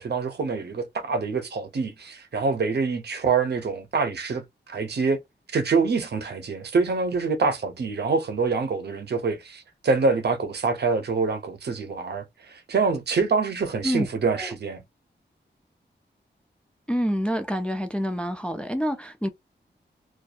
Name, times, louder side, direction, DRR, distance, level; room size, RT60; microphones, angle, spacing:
voice 1, 0.0-4.4 4.7-5.2 5.5-14.8, right 4 dB, 60° right, 0.6 m, -25 dB
voice 2, 16.9-19.3, equal, 5° left, 0.3 m, -27 dB
2.6 x 2.3 x 2.3 m
wide cardioid pair, 130°, 19 cm